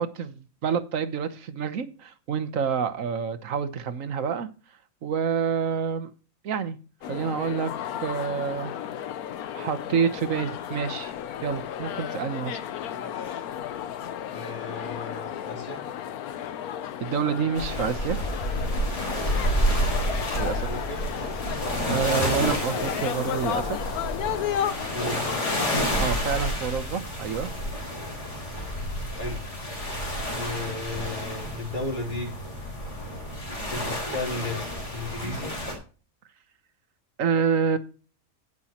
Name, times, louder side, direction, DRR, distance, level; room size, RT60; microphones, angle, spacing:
voice 1, 0.0-4.5 5.0-6.1 6.4-6.8 7.1-7.7 8.0-8.7 9.5-11.1 11.4-12.6 17.0-18.2 20.4-20.7 21.8-23.8 24.9-25.2 26.0-27.5 37.2-37.8, right 6 dB, 65° right, 1.3 m, -28 dB
sound 1, 7.0-25.9, left 10 dB, 85° left, 1.2 m, -33 dB
voice 2, 12.9-13.5 14.3-15.8 20.4-21.0 24.9-25.3 29.1-29.7 30.3-32.3 33.7-35.6, left 2 dB, 35° left, 3.7 m, -35 dB
sound 2, 17.6-35.7, equal, 50° left, 4.2 m, -30 dB
18.0 x 6.2 x 2.9 m
omnidirectional pair, 1.5 m